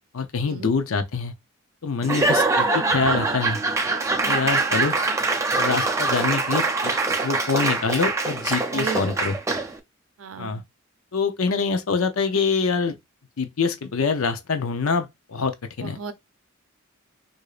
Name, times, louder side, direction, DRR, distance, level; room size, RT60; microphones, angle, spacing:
voice 1, 0.1-1.3 1.8-3.6 4.3-5.0 5.6-6.9 7.2-9.4 10.4-10.6 11.1-13.0 13.4-16.0, left 5 dB, 85° left, 0.6 m, -25 dB
Laughter / Applause / Crowd, 2.0-9.8, right 3 dB, 15° right, 0.4 m, -23 dB
voice 2, 8.7-9.0 10.2-10.6 15.8-16.1, right 6 dB, 75° right, 0.5 m, -34 dB
4.8 x 2.6 x 2.4 m
head